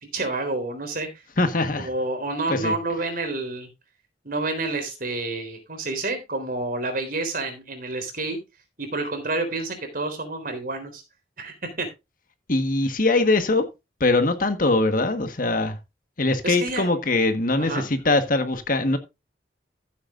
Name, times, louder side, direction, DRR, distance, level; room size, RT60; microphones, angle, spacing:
voice 1, 0.1-1.1 1.8-3.7 4.2-8.4 8.8-11.0 11.4-11.9 16.4-16.9 17.6-17.8, right 2 dB, 50° right, 3.6 m, -29 dB
voice 2, 1.4-1.9 2.5-2.7 12.5-13.7 14.0-15.8 16.2-19.0, left 2 dB, 50° left, 1.4 m, -22 dB
14.5 x 8.3 x 2.5 m
head